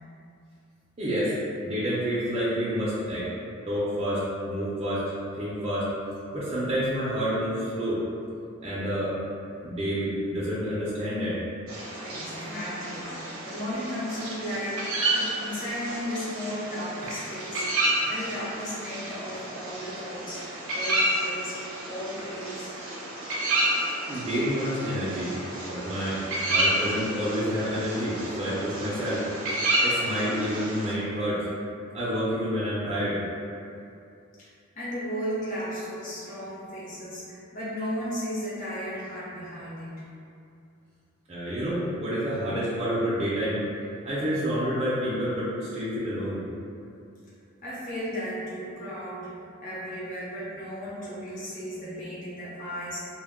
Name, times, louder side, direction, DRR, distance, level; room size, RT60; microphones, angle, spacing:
voice 1, 1.0-1.3 1.6-3.2 3.7-5.0 5.4-5.9 6.3-8.0 8.6-9.1 9.6-11.4 24.1-25.3 25.6-29.2 29.8-31.4 31.9-33.2 41.3-43.6 44.0-46.4, equal, 30° right, -10 dB, 0.4 m, -28 dB
sound 1, 11.7-30.9, right 1 dB, 80° right, 0.6 m, -30 dB
voice 2, 12.0-20.4 20.7-21.6 21.9-22.7 34.4-39.9 41.6-41.7 47.6-49.3 49.6-53.1, equal, 40° left, -9 dB, 0.7 m, -35 dB
2.2 x 2.1 x 3.4 m, 2.5 s
head